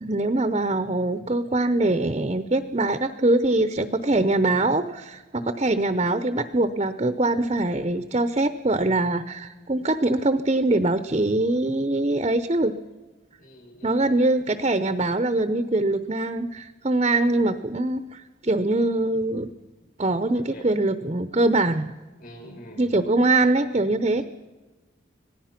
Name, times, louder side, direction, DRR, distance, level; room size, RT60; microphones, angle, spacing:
voice 1, 0.0-12.7 13.8-19.5 20.0-21.9 22.8-24.2, right 2 dB, 30° right, 11 dB, 0.7 m, -23 dB
voice 2, 13.4-14.2 20.3-20.6 22.2-23.0 24.2-24.3, equal, 45° left, 3 dB, 6.3 m, -44 dB
26.0 x 18.0 x 5.9 m, 1.2 s
head